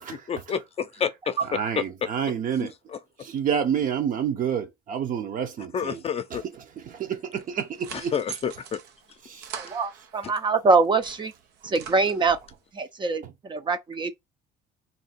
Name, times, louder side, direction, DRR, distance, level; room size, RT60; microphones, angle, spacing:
voice 1, 0.0-1.8 2.9-3.0 5.7-6.4 7.9-8.8, left 7 dB, 35° left, 0.6 m, -29 dB
voice 2, 1.5-2.7 3.2-6.0 6.3-8.1 9.2-9.5 13.2-13.3, right 8 dB, 55° right, 0.8 m, -29 dB
sound 1, 7.4-10.4 10.8-12.6, right 8 dB, 85° right, 0.7 m, -43 dB
voice 3, 9.6-11.3 11.6-12.4 12.7-14.1, right 4 dB, 30° right, 0.5 m, -24 dB
2.8 x 2.8 x 4.3 m
cardioid pair, 110°, 17 cm